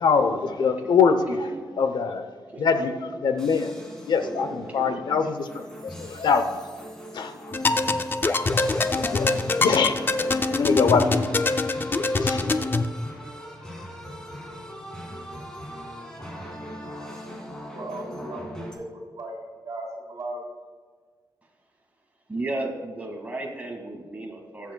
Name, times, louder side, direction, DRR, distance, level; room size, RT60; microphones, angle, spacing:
voice 1, 0.0-1.4 1.8-2.2 2.6-2.9 3.2-3.7 4.1-5.5 6.0-6.6 7.1-7.3 9.1-9.3 9.6-9.9 10.6-11.2 12.2-12.4, left 5 dB, 75° left, 8 dB, 0.8 m, -22 dB
voice 2, 0.8-1.7 2.5-3.2 4.2-5.3 22.3-24.7, right 2 dB, 20° right, 0 dB, 1.9 m, -35 dB
sound 1, 3.4-18.7, equal, 10° left, 2.2 m, -40 dB
sound 2, 7.5-12.9, left 3 dB, 30° left, 0.4 m, -24 dB
voice 3, 17.7-20.4, right 1 dB, 55° right, -2 dB, 3.2 m, -36 dB
21.5 x 7.5 x 2.3 m, 1.5 s
wide cardioid pair, 130°, 8 cm